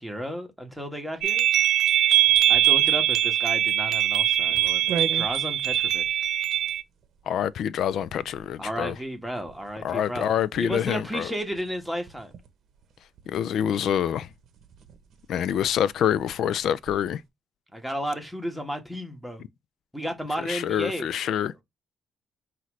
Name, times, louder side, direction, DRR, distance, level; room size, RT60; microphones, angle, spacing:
voice 1, 0.0-1.5 2.5-6.2 8.6-12.3 17.7-19.4 19.9-21.1, equal, ahead, 1.3 m, -33 dB
sound 1, 1.2-6.8, right 13 dB, 80° right, 0.3 m, -22 dB
sound 2, 2.3-17.2, right 7 dB, 65° right, 0.8 m, -42 dB
voice 2, 7.3-9.0 9.8-11.3 13.3-14.3 15.3-17.2 20.4-21.5, left 9 dB, 75° left, 0.3 m, -26 dB
5.6 x 2.5 x 3.1 m
cardioid pair, 90°, 0 cm